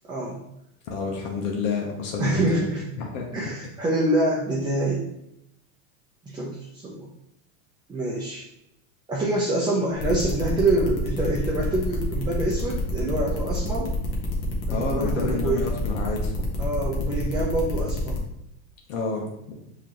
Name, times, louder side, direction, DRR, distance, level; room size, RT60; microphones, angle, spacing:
voice 1, 0.1-0.4 2.2-2.8 3.3-5.1 6.3-7.1 7.9-8.4 9.1-13.9 14.7-15.7 16.6-18.2, right 2 dB, 10° right, -4 dB, 0.6 m, -26 dB
voice 2, 0.9-2.6 3.0-3.3 14.7-16.5 18.9-19.6, left 5 dB, 75° left, 0 dB, 1.0 m, -29 dB
sound 1, 10.0-18.2, left 3 dB, 35° left, 1.1 m, -31 dB
5.0 x 3.0 x 2.9 m, 0.82 s
supercardioid pair, 130°, 39 cm